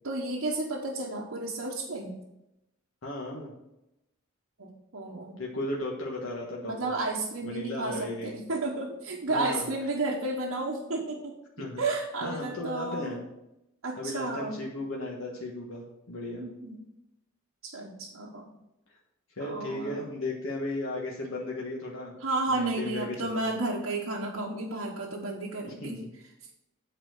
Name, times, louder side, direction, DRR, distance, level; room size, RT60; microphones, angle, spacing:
voice 1, 0.0-2.1 4.6-5.4 6.6-13.2 13.8-14.6 16.3-16.9 17.6-18.5 19.4-20.1 22.2-26.0, right 2 dB, 75° right, -4 dB, 1.2 m, -32 dB
voice 2, 3.0-3.5 5.4-6.9 7.4-8.3 9.3-9.7 11.6-11.8 12.2-13.2 14.0-16.4 19.4-22.1 22.5-23.6 25.7-26.1, left 1 dB, 80° left, -2 dB, 1.4 m, -35 dB
8.9 x 4.3 x 6.5 m, 0.90 s
head